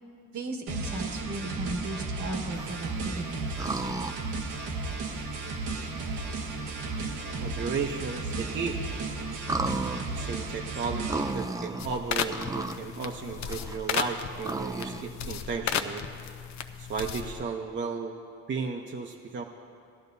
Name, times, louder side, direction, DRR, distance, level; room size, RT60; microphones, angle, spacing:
voice 1, 0.3-3.5, right 2 dB, 70° right, 3 dB, 1.6 m, -36 dB
sound 1, 0.7-11.3, right 3 dB, 90° right, 1.2 m, -34 dB
sound 2, 2.5-3.0 3.6-4.3 4.8-4.9 5.8-5.9 7.1-7.2 7.4-7.5 7.7-7.9 8.4-8.8 9.4-11.9 12.2-12.8 13.1-15.0, right 2 dB, 10° right, 0.4 m, -33 dB
voice 2, 7.4-8.8 10.1-16.0 16.8-18.1 18.5-19.4, right 5 dB, 40° right, 2 dB, 0.8 m, -34 dB
sound 3, 11.8-17.4, left 7 dB, 65° left, 0.7 m, -34 dB
18.5 x 11.5 x 2.7 m, 2.5 s
cardioid pair, 90°, 30 cm